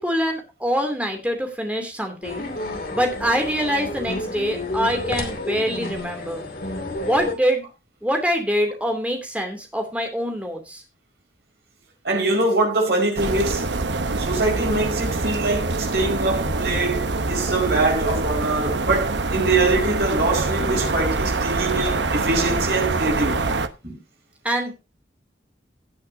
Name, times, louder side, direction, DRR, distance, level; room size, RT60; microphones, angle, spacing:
voice 1, 0.0-2.5 2.9-6.4 7.0-7.7 8.0-10.8 24.4-24.7, equal, 5° right, 2.7 m, -24 dB
sound 1, 2.2-7.3, left 2 dB, 55° left, 2.6 m, -30 dB
voice 2, 12.0-13.7 14.2-23.5, right 2 dB, 65° right, 5.0 m, -23 dB
sound 2, 13.2-23.7, right 3 dB, 85° right, 1.0 m, -25 dB
sound 3, 15.4-15.5 15.7-15.8 16.4-16.8 17.3-19.3 19.8-19.9 20.3-22.3 22.6-22.7 23.0-23.1 23.4-23.5 23.8-24.0, right 1 dB, 40° right, 6.3 m, -40 dB
17.0 x 8.5 x 2.7 m
head